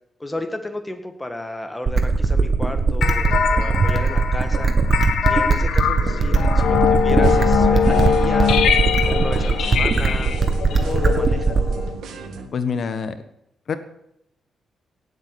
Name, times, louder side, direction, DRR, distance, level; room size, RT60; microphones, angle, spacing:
voice 1, 0.2-4.7 5.3-8.6 9.0-10.4 10.7-11.6, left 1 dB, 10° left, 6 dB, 1.9 m, -32 dB
sound 1, 1.9-11.9, right 4 dB, 35° right, 1.7 m, -20 dB
sound 2, 3.0-11.9, left 7 dB, 80° left, 1.6 m, -22 dB
sound 3, 7.2-12.5, right 4 dB, 80° right, 2.2 m, -35 dB
voice 2, 12.5-13.1 13.7-13.8, left 6 dB, 50° left, 10 dB, 1.4 m, -25 dB
17.5 x 8.3 x 7.1 m, 0.81 s
cardioid pair, 130°, 0 cm